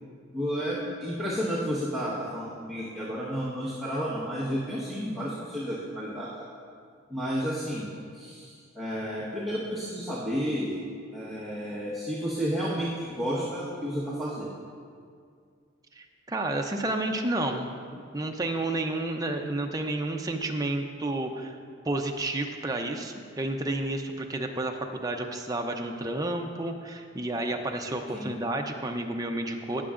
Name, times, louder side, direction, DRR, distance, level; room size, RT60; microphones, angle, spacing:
voice 1, 0.3-6.4 7.1-7.9 8.1-10.8 11.1-14.5 28.1-28.4, equal, ahead, -11 dB, 1.2 m, -31 dB
voice 2, 15.9-21.6 21.8-29.8, right 2 dB, 15° right, 3 dB, 0.5 m, -31 dB
19.0 x 6.9 x 2.5 m, 2.2 s
head